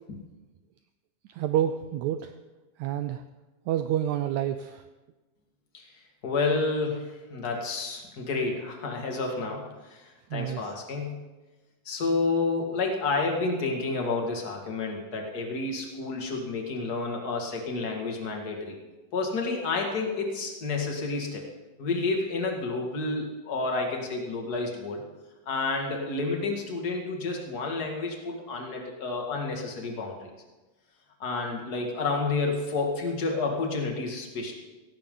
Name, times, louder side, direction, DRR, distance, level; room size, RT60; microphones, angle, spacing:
voice 1, 1.3-2.4 2.8-3.2 3.7-4.9 10.3-10.7, right 11 dB, 90° right, 9 dB, 1.6 m, -28 dB
voice 2, 6.2-11.2 11.9-18.8 19.1-21.4 21.8-25.0 25.5-30.2 31.2-34.6, left 3 dB, 35° left, 1 dB, 2.0 m, -30 dB
17.0 x 16.5 x 3.9 m, 1.2 s
omnidirectional pair, 4.0 m